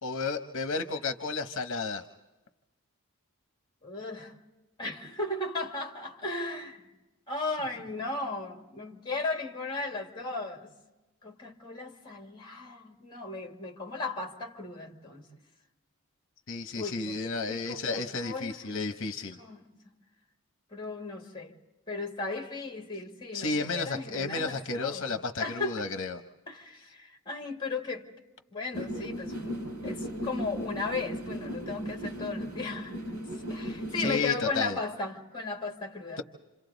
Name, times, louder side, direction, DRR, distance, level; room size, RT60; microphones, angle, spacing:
voice 1, 0.0-2.0 16.5-19.4 23.3-26.2 34.0-34.8, left 4 dB, 60° left, 1.0 m, -32 dB
voice 2, 3.8-4.3 4.8-6.8 7.3-10.7 11.2-15.3 16.8-17.2 17.5-18.6 19.4-19.7 20.7-21.5 21.9-25.0 25.4-25.9 26.5-28.1 28.5-33.0 33.5-36.2, left 3 dB, 20° left, 2.0 m, -36 dB
sound 1, 28.7-34.2, equal, 75° right, 6.6 m, -36 dB
28.5 x 27.0 x 4.0 m
head